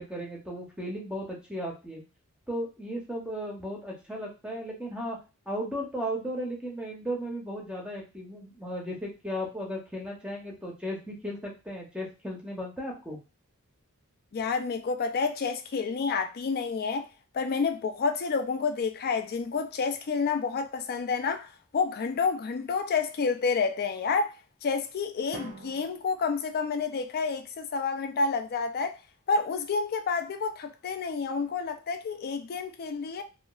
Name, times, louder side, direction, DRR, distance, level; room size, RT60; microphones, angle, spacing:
voice 1, 0.0-2.0 2.5-5.2 5.5-13.2, equal, 5° right, 0.7 m, -35 dB
voice 2, 14.3-17.1 17.3-29.0 29.3-33.2, left 5 dB, 45° left, 0.4 m, -29 dB
Drum, 25.3-27.3, right 3 dB, 40° right, 0.6 m, -48 dB
2.8 x 2.3 x 2.3 m
head